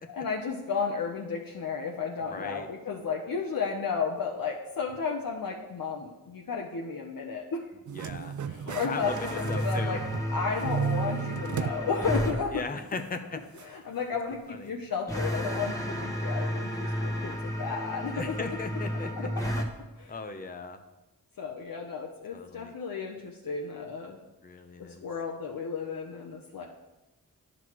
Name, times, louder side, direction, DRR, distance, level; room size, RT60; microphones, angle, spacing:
voice 1, 0.1-7.6 8.5-10.0 10.3-12.6 13.7-18.3 19.2-19.3 20.0-20.1 21.4-24.2 24.8-26.6, left 5 dB, 70° left, 0 dB, 0.9 m, -33 dB
voice 2, 2.2-2.7 7.9-8.4 8.7-10.0 12.5-13.4 14.5-14.7 18.1-19.3 20.1-20.8 22.3-22.7 24.4-25.1, left 3 dB, 25° left, 7 dB, 0.6 m, -38 dB
sound 1, 7.9-10.3 10.6-11.8 12.2-12.3 13.6-13.7, right 7 dB, 55° right, 0.5 m, -34 dB
sound 2, 9.0-12.4 15.1-19.7, equal, 10° left, 1.2 m, -32 dB
10.0 x 6.0 x 3.1 m, 1.0 s
cardioid pair, 55°, 36 cm